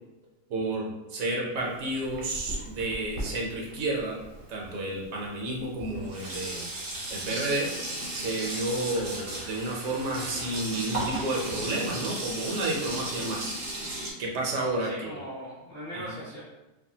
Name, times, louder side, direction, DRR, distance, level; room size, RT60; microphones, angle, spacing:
voice 1, 0.5-4.2 4.5-7.7 8.1-13.5 14.2-15.2 15.9-16.1, right 2 dB, 75° right, -2 dB, 1.0 m, -31 dB
Sink (filling or washing), 1.6-4.7 5.5-5.6 5.8-14.1, right 1 dB, 55° right, 0.7 m, -36 dB
voice 2, 14.8-16.4, equal, 35° left, -9 dB, 0.7 m, -40 dB
2.6 x 2.2 x 2.7 m, 1.0 s
omnidirectional pair, 1.5 m